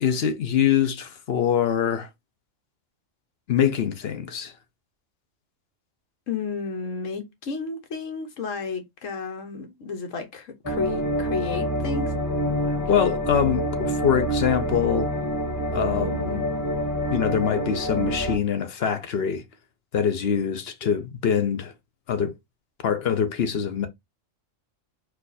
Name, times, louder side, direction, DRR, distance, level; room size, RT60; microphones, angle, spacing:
voice 1, 0.0-2.1 3.5-4.5 12.9-15.1 15.7-16.4 17.1-19.4 19.9-21.7 22.1-22.3 22.8-23.9, left 8 dB, 55° left, 0.9 m, -24 dB
voice 2, 6.3-12.1 15.7-16.2, left 5 dB, 85° left, 1.4 m, -32 dB
sound 1, 10.6-18.4, equal, 15° left, 1.5 m, -27 dB
4.6 x 2.5 x 4.0 m
omnidirectional pair, 1.3 m